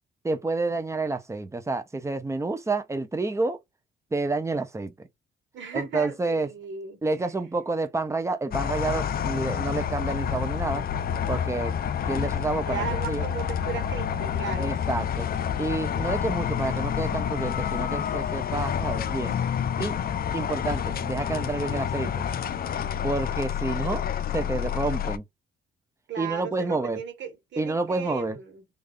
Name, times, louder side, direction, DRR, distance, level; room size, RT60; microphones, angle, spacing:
voice 1, 0.2-3.6 4.1-5.1 5.7-6.5 7.0-10.8 11.3-11.7 12.1-13.2 14.6-15.3 15.6-19.4 19.8-20.0 20.3-22.2 23.0-24.0 24.3-25.2 26.2-27.0 27.6-28.4, right 3 dB, 15° right, 0.9 m, -29 dB
voice 2, 5.5-7.3 12.7-14.7 26.1-28.6, right 7 dB, 70° right, 1.8 m, -36 dB
sound 1, 8.5-25.2, left 8 dB, 50° left, 0.6 m, -28 dB
3.5 x 2.7 x 3.6 m
cardioid pair, 90°, 20 cm